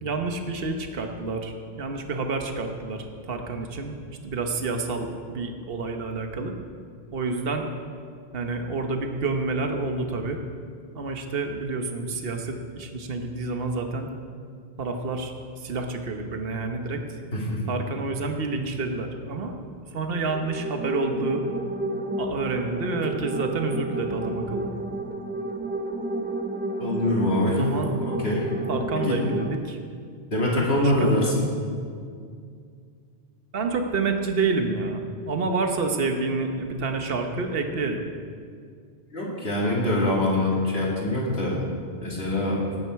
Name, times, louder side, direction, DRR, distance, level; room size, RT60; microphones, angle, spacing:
voice 1, 0.0-3.9 4.2-6.5 7.1-7.6 8.3-10.4 10.9-14.1 14.8-15.3 15.6-17.2 17.7-19.5 19.9-21.4 22.2-24.7 27.5-27.9 28.7-29.8 30.7-31.1 33.5-38.0, right 3 dB, 65° right, 5 dB, 1.2 m, -28 dB
voice 2, 17.3-17.6 26.8-27.6 28.0-28.4 28.9-29.2 30.3-31.5 39.1-41.6 42.0-42.7, left 1 dB, 80° left, -4 dB, 3.0 m, -24 dB
sound 1, 20.1-29.5, right 1 dB, 15° right, 0.5 m, -31 dB
17.5 x 9.4 x 4.6 m, 2.2 s
omnidirectional pair, 1.0 m